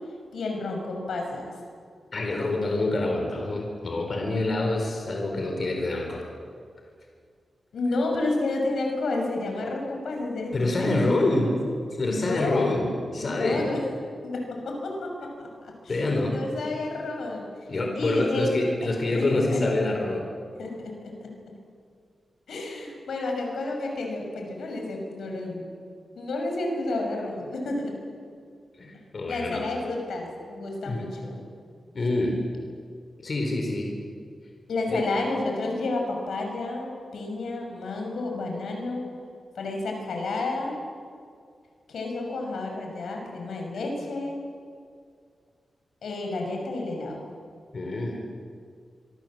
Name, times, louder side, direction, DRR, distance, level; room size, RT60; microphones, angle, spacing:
voice 1, 0.3-1.5 7.7-11.1 11.4-11.6 12.0-12.7 13.2-13.8 14.2-15.9 16.3-17.5 17.9-19.3 19.5-19.6 20.5-21.5 22.5-25.7 26.2-27.9 29.3-31.4 34.7-39.1 39.5-40.8 41.9-44.4 46.0-47.2, left 2 dB, 85° left, 2 dB, 6.3 m, -31 dB
voice 2, 2.1-6.3 10.5-11.5 12.0-13.7 15.9-16.4 17.7-20.2 28.8-29.7 30.8-31.1 31.9-32.4 33.2-33.9 34.9-35.0 47.7-48.2, left 2 dB, 40° left, 2 dB, 4.0 m, -26 dB
26.0 x 24.5 x 7.7 m, 2.2 s
wide cardioid pair, 165°, 0 cm